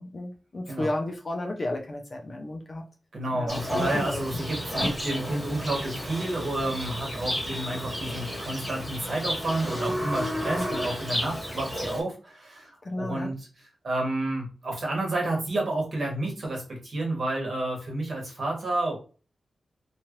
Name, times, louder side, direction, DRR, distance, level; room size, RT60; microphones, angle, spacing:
voice 1, 0.0-2.8 3.3-4.2 12.8-13.3, left 1 dB, 30° left, 2 dB, 0.5 m, -32 dB
voice 2, 3.1-19.0, right 2 dB, 50° right, 0 dB, 1.1 m, -30 dB
Livestock farm animals working animals, 3.5-12.0, equal, 5° left, 1.2 m, -32 dB
2.8 x 2.4 x 3.0 m, 0.35 s
wide cardioid pair, 160°, 0 cm